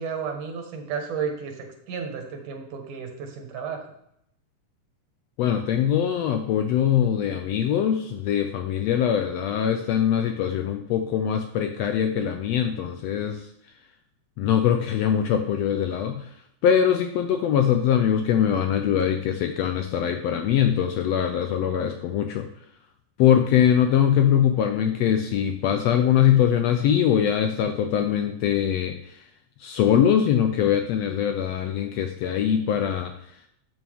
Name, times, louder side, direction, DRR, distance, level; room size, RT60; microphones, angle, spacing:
voice 1, 0.0-3.8, right 6 dB, 85° right, 4 dB, 3.0 m, -32 dB
voice 2, 5.4-13.4 14.4-16.3 16.6-22.5 23.2-29.2 29.6-33.1, left 9 dB, 75° left, 6 dB, 1.5 m, -22 dB
12.0 x 7.3 x 3.5 m, 0.75 s
omnidirectional pair, 3.5 m